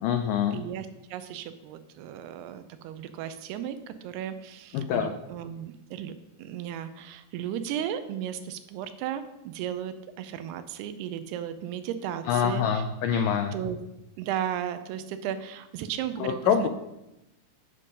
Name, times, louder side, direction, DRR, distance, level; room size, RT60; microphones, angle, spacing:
voice 1, 0.0-0.6 4.7-5.1 12.3-13.6 16.2-16.7, left 8 dB, 90° left, 7 dB, 1.9 m, -25 dB
voice 2, 0.5-6.1 6.4-12.8 13.5-13.8 14.2-16.7, right 10 dB, 90° right, 11 dB, 2.7 m, -35 dB
9.8 x 5.4 x 5.3 m, 0.92 s
omnidirectional pair, 4.5 m